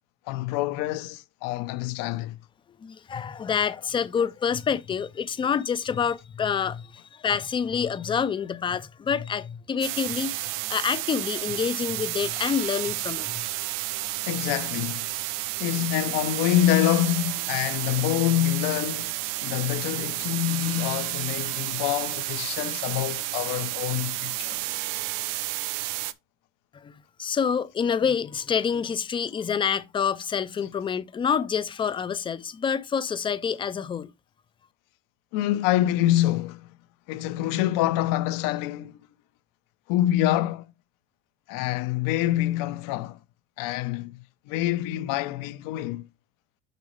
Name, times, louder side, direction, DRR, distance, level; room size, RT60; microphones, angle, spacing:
voice 1, 0.3-2.4 14.2-15.1 15.6-19.1 19.4-24.6 35.3-36.7 37.1-38.9 39.9-40.7 41.5-43.2 43.6-44.2 44.5-46.1, left 14 dB, 70° left, 0.8 m, -26 dB
voice 2, 2.8-13.4 26.8-26.9 27.2-34.1, left 7 dB, 15° left, 0.3 m, -27 dB
sound 1, 9.8-26.1, right 17 dB, 70° right, 0.7 m, -31 dB
6.9 x 6.2 x 3.2 m
cardioid pair, 155°, 34 cm